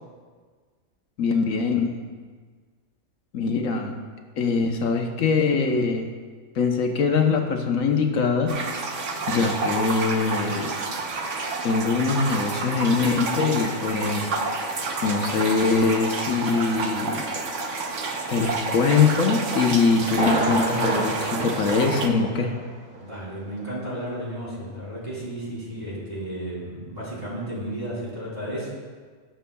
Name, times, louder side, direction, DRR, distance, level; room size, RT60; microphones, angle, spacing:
voice 1, 1.2-2.0 3.3-3.9 4.4-6.1 6.5-8.6 9.3-10.7 11.6-14.3 15.0-17.3 18.3-22.6, left 4 dB, 80° left, 3 dB, 1.3 m, -23 dB
sound 1, 8.5-22.1, right 3 dB, 65° right, 1.2 m, -29 dB
Thunder, 20.1-22.7 22.9-23.0 23.6-23.7, right 2 dB, 90° right, 1.8 m, -28 dB
voice 2, 23.0-28.7, right 1 dB, 30° right, -6 dB, 3.3 m, -33 dB
18.5 x 6.9 x 2.3 m, 1.5 s
omnidirectional pair, 1.4 m